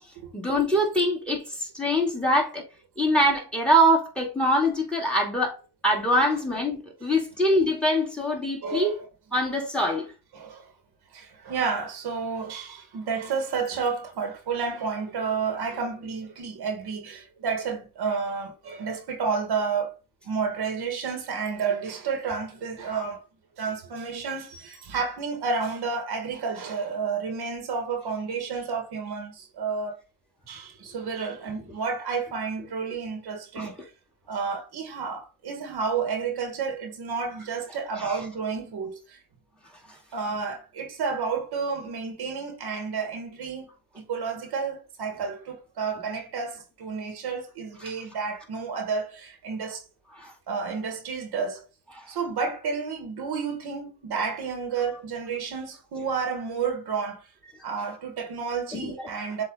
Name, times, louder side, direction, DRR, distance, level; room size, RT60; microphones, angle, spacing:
voice 1, 0.3-2.6 3.0-5.6 5.8-9.0 9.3-10.0 33.6-33.7 38.0-38.2 50.2-50.3 51.9-52.0 58.7-58.9, equal, 5° left, 2.9 m, -24 dB
voice 2, 8.6-9.0 10.3-10.7 11.1-19.9 20.2-23.2 23.6-29.9 30.5-33.8 34.3-39.2 40.1-43.7 44.0-49.8 50.5-51.6 52.1-57.2 57.6-59.4, right 5 dB, 80° right, 2.0 m, -31 dB
7.6 x 3.2 x 3.9 m
cardioid pair, 105°, 38 cm